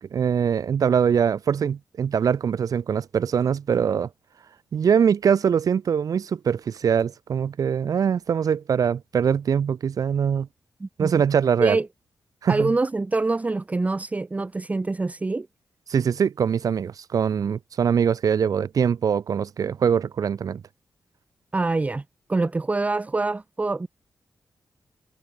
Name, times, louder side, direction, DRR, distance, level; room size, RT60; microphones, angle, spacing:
voice 1, 0.0-4.1 4.7-10.5 11.0-11.8 12.4-12.7 15.9-20.6, right 7 dB, 60° right, 0.6 m, -23 dB
voice 2, 10.8-11.2 11.6-11.9 12.5-15.5 21.5-22.0 22.3-23.9, right 3 dB, 20° right, 0.6 m, -25 dB
wide cardioid pair, 105°, 7 cm